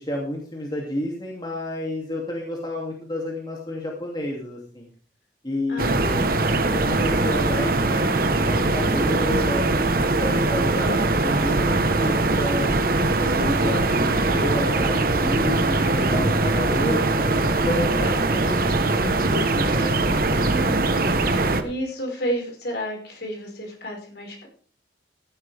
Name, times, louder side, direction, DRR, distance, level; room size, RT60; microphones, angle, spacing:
voice 1, 0.0-4.9 5.4-6.4 6.7-9.7 10.0-17.2 17.7-20.0, left 1 dB, 25° left, -1 dB, 2.8 m, -30 dB
voice 2, 5.7-6.6 20.4-21.0 21.3-24.5, right 1 dB, 60° left, 1 dB, 5.5 m, -32 dB
sound 1, 5.8-21.6, right 2 dB, 50° right, 1.3 m, -21 dB
15.0 x 12.5 x 3.6 m, 0.43 s
head